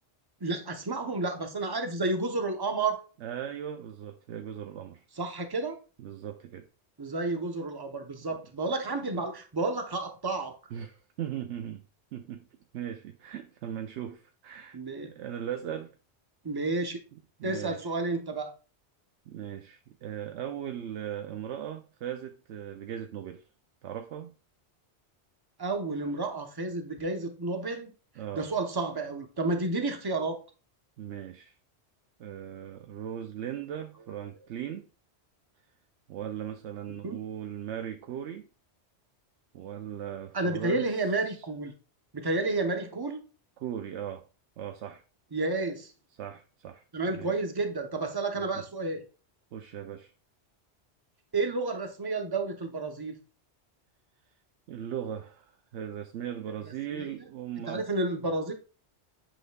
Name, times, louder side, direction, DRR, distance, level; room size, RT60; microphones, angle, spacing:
voice 1, 0.4-3.0 5.2-5.8 7.0-10.6 14.7-15.1 16.4-17.0 17.4-18.5 25.6-27.9 28.3-30.4 37.0-37.2 40.3-41.7 42.1-43.2 45.3-45.9 46.9-49.0 51.3-53.2 56.9-57.2 57.7-58.5, right 3 dB, 25° right, 0.8 m, -31 dB
voice 2, 3.2-5.0 6.0-6.7 8.3-8.4 10.7-11.8 12.1-12.5 12.7-15.9 17.4-17.8 19.3-23.4 23.8-24.3 28.2-28.5 31.0-31.5 32.2-34.9 36.1-38.5 39.5-40.9 41.3-41.4 43.6-44.2 44.6-45.0 46.2-46.8 47.1-47.3 48.3-48.6 49.5-50.1 54.7-57.9, right 10 dB, 80° right, 0.9 m, -38 dB
7.9 x 5.9 x 2.3 m
omnidirectional pair, 1.2 m